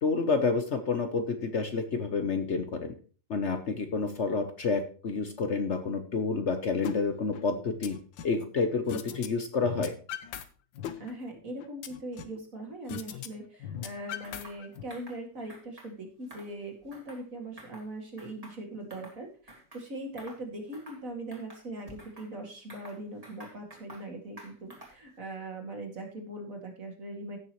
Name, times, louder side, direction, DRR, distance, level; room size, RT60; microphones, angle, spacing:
voice 1, 0.0-2.9 3.3-8.0 8.2-9.9, left 4 dB, 50° left, 8 dB, 0.9 m, -29 dB
sound 1, 6.8-7.0 7.3-8.4 8.9-9.3 9.5-10.4 10.7-12.4 12.9-13.3 13.5-14.8, left 9 dB, 80° left, 1.5 m, -39 dB
voice 2, 11.0-27.4, right 1 dB, 45° right, 2 dB, 2.7 m, -41 dB
sound 2, 14.2-14.6 14.9-15.2 15.5-15.9 16.2-17.3 17.6-17.9 18.2-19.2 19.5-19.8 20.2-20.4 20.7-21.0 21.3-22.3 22.7-24.1 24.4-25.1, right 1 dB, 20° right, 2.2 m, -50 dB
16.0 x 6.6 x 3.1 m, 0.39 s
omnidirectional pair, 2.0 m